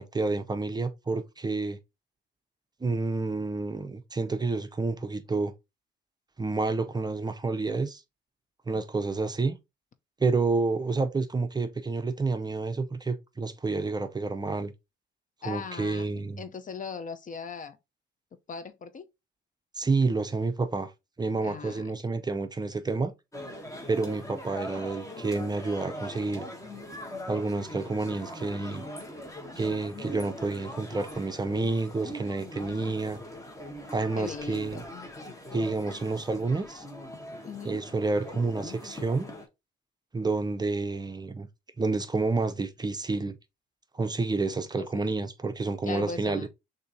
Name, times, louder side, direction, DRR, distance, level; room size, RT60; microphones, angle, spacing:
voice 1, 0.0-1.8 2.8-5.5 6.4-8.0 8.7-9.6 10.2-14.7 15.5-16.4 19.8-20.9 21.2-23.1 23.9-26.5 27.3-28.8 29.6-33.2 33.9-34.8 35.5-36.8 37.6-39.3 40.1-41.5 41.8-43.4 43.9-46.5, right 3 dB, 20° right, 0.6 m, -29 dB
voice 2, 15.4-17.8 18.5-19.1 21.4-21.9 34.2-34.9 37.4-37.8 44.8-45.1 45.8-46.5, left 5 dB, 40° left, 0.6 m, -39 dB
sound 1, 23.3-39.5, left 1 dB, 15° left, 1.2 m, -41 dB
6.5 x 2.7 x 2.7 m
cardioid pair, 90°, 20 cm